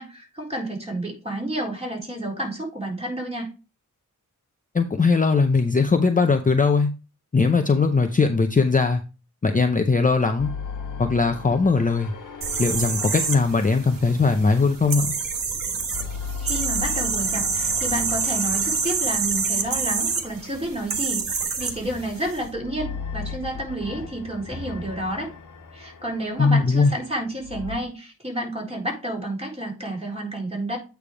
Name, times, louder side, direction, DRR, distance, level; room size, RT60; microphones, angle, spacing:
voice 1, 0.0-3.5 16.4-25.3 25.7-30.8, right 1 dB, 20° right, -2 dB, 4.1 m, -30 dB
voice 2, 4.7-6.9 7.3-9.0 9.4-10.5 11.0-12.1 12.6-15.1 26.4-26.9, left 4 dB, 25° left, 6 dB, 0.6 m, -20 dB
sound 1, 10.4-15.3 15.7-21.0 21.8-27.8, left 6 dB, 70° left, 1.3 m, -38 dB
sound 2, 12.4-22.4, right 5 dB, 90° right, 1.4 m, -27 dB
8.8 x 3.4 x 4.9 m, 0.31 s
wide cardioid pair, 75°, 33 cm